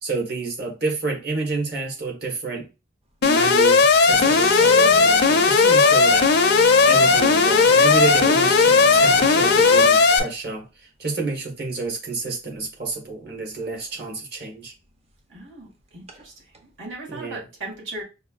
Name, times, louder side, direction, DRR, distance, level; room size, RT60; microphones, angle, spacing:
voice 1, 0.0-2.7 3.2-6.3 6.9-10.6 11.0-14.7 17.1-17.4, right 3 dB, 55° right, 0 dB, 1.3 m, -29 dB
Alarm, 3.2-10.2, left 4 dB, 55° left, 0.5 m, -16 dB
sound 1, 3.9-10.1 13.6-13.7 14.0-14.1 16.1-16.2 16.5-16.6, right 2 dB, 35° right, 0.6 m, -34 dB
voice 2, 15.3-16.3 16.8-18.0, right 2 dB, 90° right, -2 dB, 1.7 m, -37 dB
5.3 x 2.4 x 2.4 m, 0.29 s
head